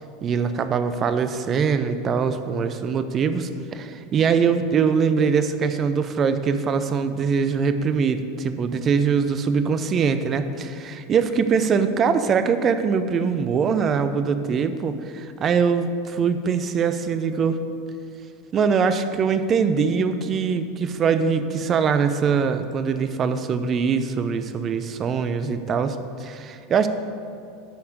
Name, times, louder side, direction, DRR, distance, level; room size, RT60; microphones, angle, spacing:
voice 1, 0.2-17.6 18.5-26.9, right 6 dB, 35° right, 10 dB, 0.7 m, -22 dB
10.5 x 5.6 x 6.5 m, 2.4 s
hypercardioid pair, 85°, 0 cm